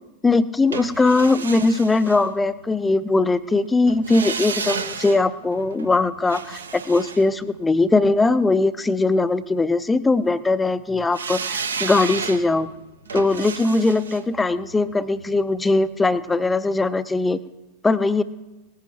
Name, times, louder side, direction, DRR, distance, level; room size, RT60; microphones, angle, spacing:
voice 1, 0.2-12.7 13.1-17.4 17.8-18.2, left 3 dB, 10° left, 15 dB, 0.6 m, -20 dB
sound 1, 0.7-2.8 3.9-8.1 11.1-16.1 16.4-16.5, right 5 dB, 70° right, 1.0 m, -33 dB
19.0 x 10.5 x 4.6 m, 1.1 s
figure-of-eight pair, 90°, 0 cm